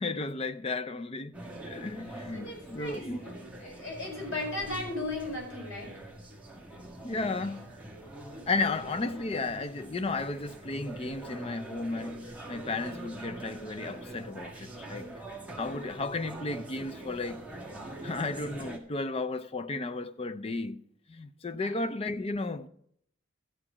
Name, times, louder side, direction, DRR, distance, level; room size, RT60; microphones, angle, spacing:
voice 1, 0.0-1.4 1.6-3.3 7.0-7.7 8.5-15.1 15.6-17.5 18.0-20.8 21.1-22.7, left 3 dB, 30° left, 0.4 m, -34 dB
sound 1, 1.3-18.8, right 2 dB, 5° right, 1.6 m, -44 dB
voice 2, 2.3-5.9 8.3-8.8 21.6-21.9, left 2 dB, 65° left, 5.9 m, -37 dB
13.5 x 4.9 x 8.4 m
head